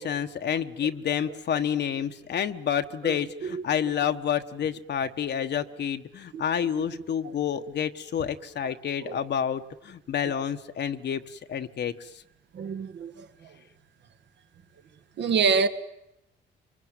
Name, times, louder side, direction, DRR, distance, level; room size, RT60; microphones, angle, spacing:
voice 1, 0.0-12.2, left 8 dB, 60° left, 1.2 m, -29 dB
voice 2, 3.0-3.6 6.3-6.4 6.8-6.9 7.2-7.3 9.0-9.2 12.5-13.5 15.2-15.7, right 5 dB, 65° right, 1.8 m, -27 dB
25.0 x 24.0 x 9.2 m
cardioid pair, 90°, 20 cm